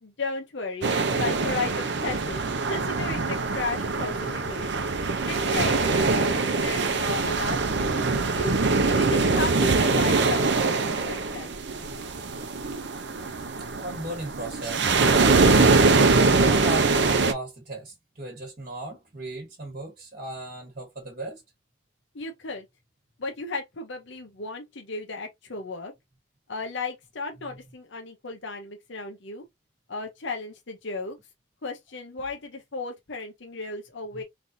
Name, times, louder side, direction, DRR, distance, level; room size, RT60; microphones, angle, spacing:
voice 1, 0.0-4.9 5.3-8.6 9.0-11.5 22.1-22.6 23.2-25.9 26.5-29.4 29.9-31.2 31.6-34.2, left 3 dB, 65° left, 0.7 m, -34 dB
sound 1, 0.8-17.3, right 3 dB, 60° right, 0.6 m, -23 dB
voice 2, 4.0-4.4 13.0-13.3 13.7-21.4 34.1-34.2, right 2 dB, 45° right, 1.2 m, -37 dB
3.9 x 3.3 x 2.7 m
head